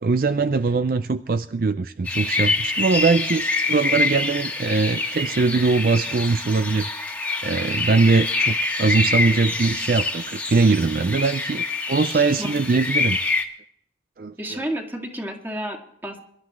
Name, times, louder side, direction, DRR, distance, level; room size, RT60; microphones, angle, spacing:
voice 1, 0.0-6.9 7.4-13.2 14.2-14.6, right 4 dB, 50° right, 12 dB, 0.4 m, -21 dB
sound 1, 2.1-13.4, left 3 dB, 10° left, 1.6 m, -26 dB
voice 2, 12.1-12.5 14.4-16.2, right 1 dB, 10° right, 1 dB, 2.3 m, -31 dB
23.5 x 12.0 x 3.2 m, 0.71 s
head